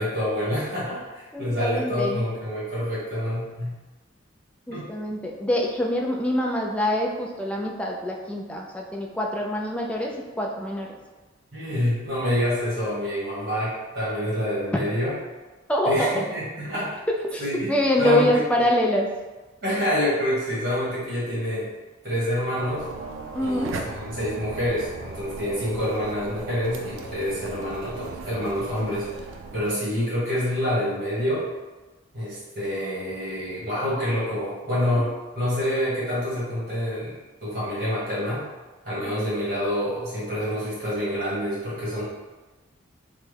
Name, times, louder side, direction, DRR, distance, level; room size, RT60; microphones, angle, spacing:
voice 1, 0.0-3.8 4.7-4.8 11.5-15.1 15.8-16.9 17.4-18.4 19.6-21.7 22.0-22.8 23.4-29.1 29.5-31.4 32.1-38.4 38.8-42.0, equal, 50° right, -9 dB, 1.5 m, -27 dB
voice 2, 1.3-2.2 4.7-10.9 15.7-16.1 17.1-17.4 17.7-19.1 23.3-23.7 39.0-39.2, left 1 dB, 5° left, -1 dB, 0.3 m, -25 dB
sound 1, 22.6-29.7, right 3 dB, 85° right, 0.4 m, -37 dB
3.4 x 2.0 x 3.3 m, 1.2 s
head